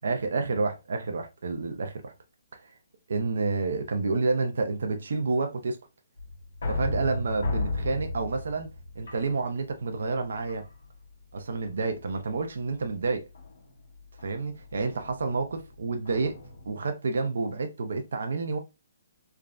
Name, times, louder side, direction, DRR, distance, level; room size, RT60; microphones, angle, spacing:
voice 1, 0.0-2.1 2.6-2.7 3.1-5.8 6.7-10.7 11.3-13.3 14.2-16.4 16.7-18.6, right 3 dB, 70° right, 0.5 m, -29 dB
sound 1, 6.2-9.9 10.5-11.0 11.5-11.9 13.3-16.7, left 2 dB, 75° left, 1.4 m, -35 dB
3.4 x 2.0 x 2.5 m
hypercardioid pair, 175°, 0 cm